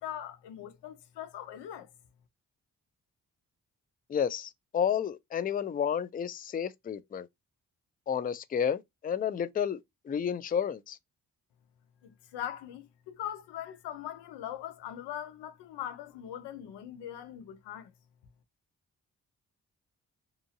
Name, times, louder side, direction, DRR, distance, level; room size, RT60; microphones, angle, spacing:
voice 1, 0.0-1.9 12.0-17.9, left 11 dB, 85° left, 0.6 m, -41 dB
voice 2, 4.1-7.3 8.1-9.8 10.1-11.0, left 8 dB, 25° left, 0.4 m, -31 dB
2.6 x 2.4 x 2.7 m
supercardioid pair, 45°, 40 cm